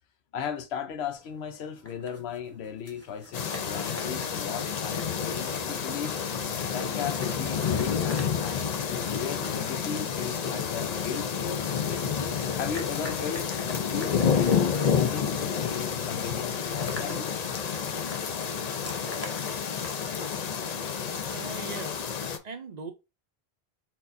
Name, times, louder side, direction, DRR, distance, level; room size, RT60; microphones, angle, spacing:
voice 1, 0.3-6.2 6.7-12.1 12.6-14.5 14.9-17.5, left 8 dB, 90° left, 0.9 m, -37 dB
sound 1, 1.1-21.0, left 1 dB, 15° left, 0.8 m, -47 dB
sound 2, 3.3-22.4, left 7 dB, 50° left, 0.6 m, -29 dB
voice 2, 21.3-22.1 22.4-22.9, right 5 dB, 50° right, 0.6 m, -39 dB
4.5 x 3.7 x 2.6 m
omnidirectional pair, 1.0 m